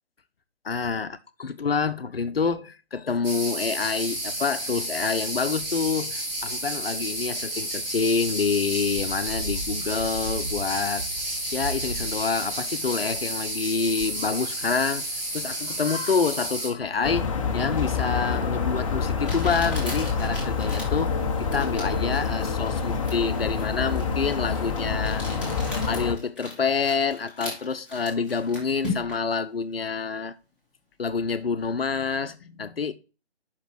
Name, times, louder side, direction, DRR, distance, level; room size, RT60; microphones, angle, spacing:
voice 1, 0.6-11.1 11.5-15.1 15.3-25.3 25.9-30.3 31.0-32.9, left 5 dB, 60° left, 0.8 m, -27 dB
sound 1, 3.2-16.7, right 1 dB, 25° right, 2.9 m, -31 dB
sound 2, 17.0-26.1, left 5 dB, 30° left, 0.8 m, -27 dB
Crumpling crinkling, 18.3-18.4 19.2-29.3, left 2 dB, 5° right, 2.2 m, -38 dB
5.9 x 5.1 x 6.0 m
figure-of-eight pair, 145°, 33 cm